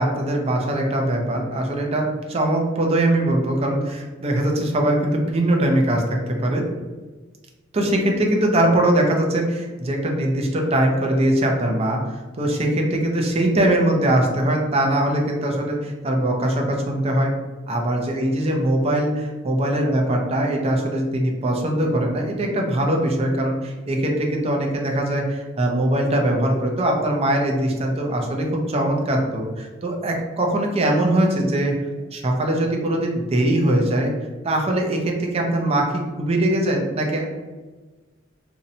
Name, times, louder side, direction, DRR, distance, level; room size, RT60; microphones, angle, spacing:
voice 1, 0.0-6.6 7.7-17.3 17.7-31.7 32.1-34.1 34.4-37.3, right 1 dB, 30° right, 1 dB, 0.4 m, -21 dB
2.6 x 2.1 x 2.7 m, 1.3 s
head